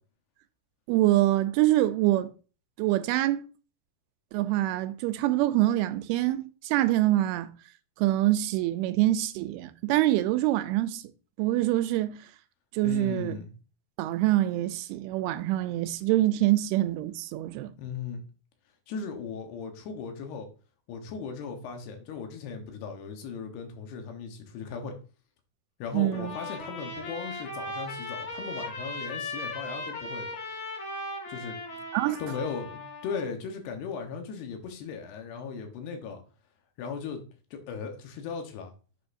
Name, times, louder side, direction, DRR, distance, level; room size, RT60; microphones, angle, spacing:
voice 1, 0.9-2.3 2.8-3.4 4.3-7.5 8.0-11.0 11.4-12.2 12.7-13.4 14.0-17.7 25.9-26.3 31.9-32.2, right 15 dB, 90° right, 2.5 m, -25 dB
voice 2, 12.8-13.5 17.8-18.2 18.9-20.5 20.9-24.9 25.8-30.3 31.3-31.6 32.2-36.2 36.8-37.2 37.5-38.7, left 5 dB, 85° left, 3.1 m, -37 dB
Trumpet, 26.1-33.3, left 2 dB, 65° left, 4.6 m, -38 dB
7.4 x 6.3 x 2.6 m
omnidirectional pair, 4.5 m